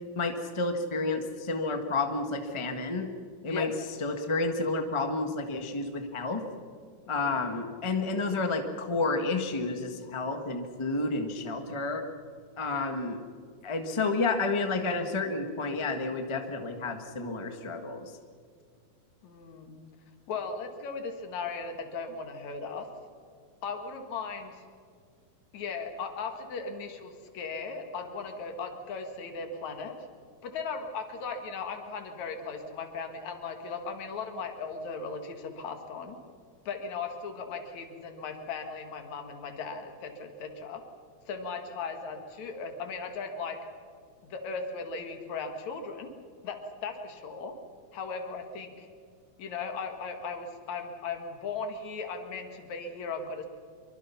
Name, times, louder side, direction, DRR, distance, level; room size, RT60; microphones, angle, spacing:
voice 1, 0.2-3.1 3.4-3.7 4.0-6.5 7.1-12.1 12.6-13.2 13.6-18.1, left 3 dB, 25° left, 5 dB, 0.6 m, -30 dB
voice 2, 19.2-19.8 20.3-22.9 23.6-24.6 25.5-30.0 30.4-36.2 36.7-40.8 41.3-43.6 44.3-46.1 46.4-47.6 47.9-48.9 49.4-53.5, left 4 dB, 70° left, 5 dB, 3.1 m, -37 dB
25.5 x 23.5 x 5.8 m, 2.2 s
omnidirectional pair, 3.4 m